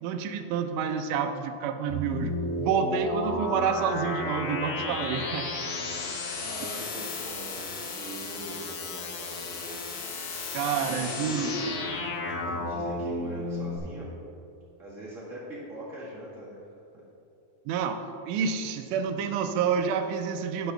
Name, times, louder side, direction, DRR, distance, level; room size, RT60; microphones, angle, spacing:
voice 1, 0.0-5.5 10.5-11.5 17.7-20.7, right 6 dB, 80° right, 7 dB, 2.0 m, -29 dB
sound 1, 1.9-13.8, left 2 dB, 65° left, 1.8 m, -33 dB
voice 2, 6.4-10.0 10.7-11.8 12.3-14.1 14.8-16.7, right 1 dB, 50° right, -7 dB, 0.8 m, -41 dB
9.5 x 4.1 x 6.7 m, 2.6 s
omnidirectional pair, 4.0 m